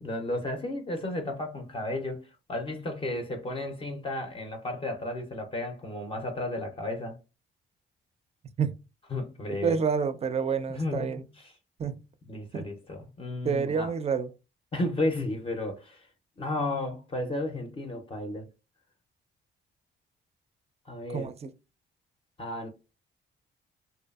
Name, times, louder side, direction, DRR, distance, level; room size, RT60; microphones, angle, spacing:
voice 1, 0.0-7.2 9.1-9.8 10.8-11.1 12.3-13.9 14.7-16.1 16.4-18.5 20.9-21.3 22.4-22.7, left 1 dB, 30° left, 0.5 m, -33 dB
voice 2, 9.6-11.2 11.8-12.0 12.5-12.7 13.4-14.3 21.1-21.5, right 6 dB, 30° right, 0.4 m, -28 dB
2.6 x 2.3 x 2.2 m
cardioid pair, 90°, 20 cm